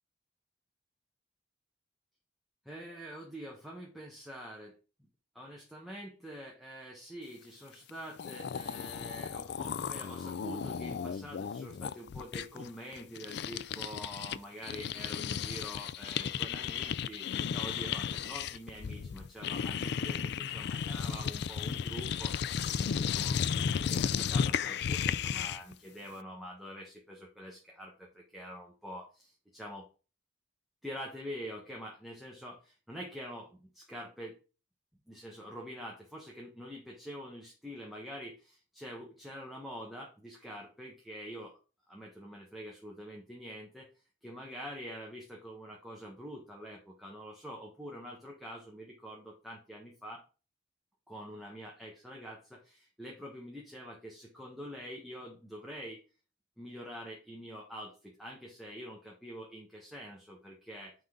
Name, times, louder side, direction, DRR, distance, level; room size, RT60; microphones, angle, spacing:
voice 1, 2.6-4.8 5.3-29.9 30.8-34.4 35.1-41.6 41.9-43.9 44.2-50.2 51.1-56.0 56.6-60.9, equal, ahead, -3 dB, 1.2 m, -46 dB
sound 1, 7.9-8.0 8.2-14.4 14.6-25.7, left 7 dB, 60° left, 0.3 m, -34 dB
9.3 x 3.8 x 3.8 m, 0.34 s
head